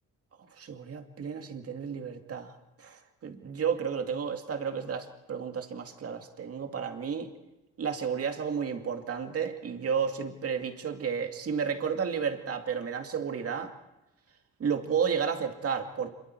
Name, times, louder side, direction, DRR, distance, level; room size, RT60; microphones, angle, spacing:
voice 1, 0.6-7.3 7.8-13.7 14.6-16.1, right 6 dB, 50° right, 5 dB, 2.3 m, -32 dB
26.5 x 23.0 x 4.7 m, 0.99 s
cardioid pair, 90°, 30 cm